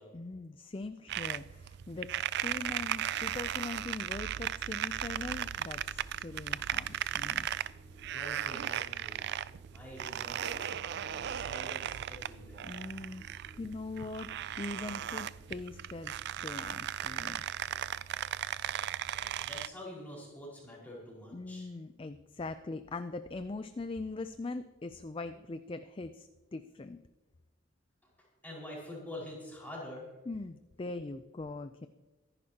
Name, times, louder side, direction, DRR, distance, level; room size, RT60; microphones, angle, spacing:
voice 1, 0.1-2.1 2.4-7.5 12.6-14.3 14.6-17.4 21.3-27.0 30.3-31.9, left 3 dB, 25° left, 10 dB, 0.4 m, -41 dB
sound 1, 1.1-19.7, right 10 dB, 55° right, 0.3 m, -37 dB
sound 2, 2.7-17.7, equal, 30° right, 4.1 m, -58 dB
voice 2, 8.1-9.2 9.7-12.8 19.0-21.7 28.2-30.1, left 1 dB, 10° left, -5 dB, 5.1 m, -47 dB
24.0 x 11.0 x 2.9 m, 1.2 s
head